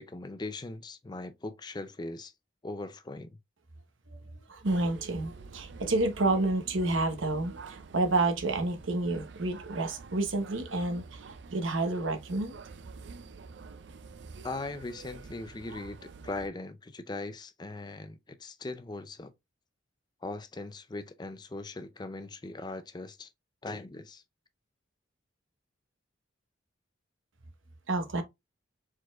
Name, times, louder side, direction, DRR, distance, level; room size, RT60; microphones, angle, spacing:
voice 1, 0.0-2.3 2.6-3.4 14.4-19.3 20.2-23.3 23.6-24.2, left 2 dB, 20° left, 0.4 m, -40 dB
voice 2, 4.1-12.6 27.9-28.2, right 2 dB, 85° right, 1.1 m, -30 dB
sound 1, 4.6-16.5, right 4 dB, 60° right, 0.4 m, -48 dB
4.6 x 4.1 x 2.4 m
head